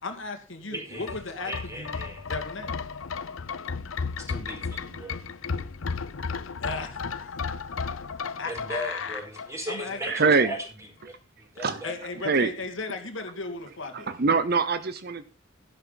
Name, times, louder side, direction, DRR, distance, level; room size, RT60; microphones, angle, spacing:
voice 1, 0.0-1.9 2.3-2.8 6.6-7.5 8.4-9.2 9.7-10.0 11.8-14.1, left 3 dB, 65° left, 5 dB, 2.3 m, -35 dB
voice 2, 0.7-1.1 1.4-2.2 4.3-5.2 8.5-10.6 11.0-11.2 11.5-11.9, equal, 15° right, 2 dB, 4.8 m, -37 dB
sound 1, 1.0-9.9 10.2-10.3, left 5 dB, 85° left, 0.7 m, -34 dB
voice 3, 10.0-10.5 11.6-11.8 12.2-12.5 13.9-15.2, right 4 dB, 50° right, 12 dB, 0.8 m, -24 dB
12.0 x 11.5 x 4.0 m, 0.33 s
head